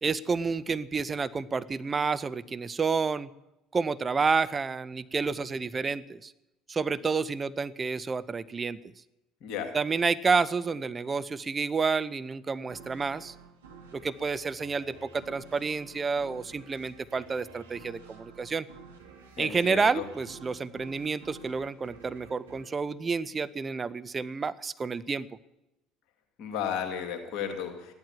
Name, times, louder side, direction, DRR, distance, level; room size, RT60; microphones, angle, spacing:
voice 1, 0.0-3.3 3.7-6.3 6.7-8.8 9.7-13.3 13.9-18.7 19.4-25.3, right 5 dB, 25° right, 15 dB, 0.6 m, -29 dB
voice 2, 9.4-9.8 19.4-20.0 26.4-27.9, left 8 dB, 55° left, 4 dB, 2.4 m, -34 dB
sound 1, 12.7-23.9, right 5 dB, 75° right, 1.9 m, -51 dB
15.0 x 11.5 x 7.3 m, 0.94 s
figure-of-eight pair, 60°, 0 cm